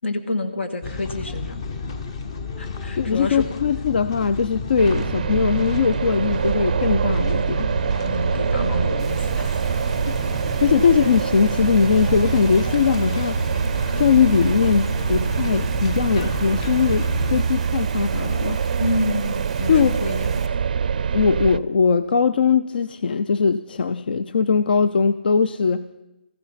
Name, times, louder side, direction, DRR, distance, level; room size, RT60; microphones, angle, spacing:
voice 1, 0.0-1.6 2.6-3.5 8.0-9.7 18.8-20.5, left 2 dB, 80° left, 8 dB, 2.1 m, -28 dB
sound 1, 0.8-17.4, left 4 dB, 30° left, 0.9 m, -32 dB
voice 2, 3.0-7.7 10.4-13.4 14.0-18.7 19.7-20.0 21.1-25.9, left 6 dB, 55° left, 13 dB, 0.5 m, -20 dB
sound 2, 4.8-21.6, right 6 dB, 45° right, 0.4 m, -24 dB
Rain, 9.0-20.5, right 5 dB, ahead, 0.9 m, -42 dB
16.0 x 14.5 x 5.8 m, 0.96 s
hypercardioid pair, 170°, 6 cm